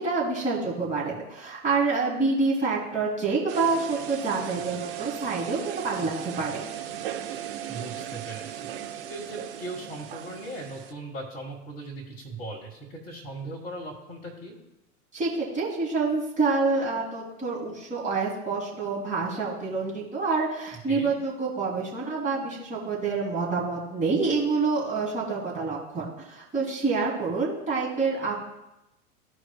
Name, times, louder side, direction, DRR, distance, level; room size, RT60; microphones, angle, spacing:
voice 1, 0.0-6.7 15.1-28.3, right 4 dB, 15° right, -5 dB, 2.2 m, -27 dB
sound 1, 3.5-10.9, right 11 dB, 40° right, 0.8 m, -37 dB
voice 2, 7.7-8.7 9.1-14.6 20.9-21.1, right 2 dB, 20° left, -2 dB, 1.4 m, -38 dB
14.0 x 4.7 x 2.3 m, 0.92 s
figure-of-eight pair, 100°, 45 cm